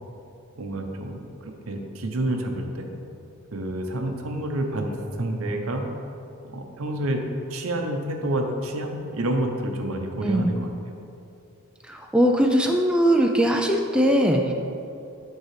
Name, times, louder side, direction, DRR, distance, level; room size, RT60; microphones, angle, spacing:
voice 1, 0.6-2.9 3.5-5.8 6.4-7.2 7.5-10.6, right 1 dB, 75° right, 3 dB, 0.7 m, -28 dB
voice 2, 11.9-14.5, equal, 5° right, 2 dB, 0.3 m, -20 dB
9.1 x 4.6 x 3.3 m, 2.7 s
head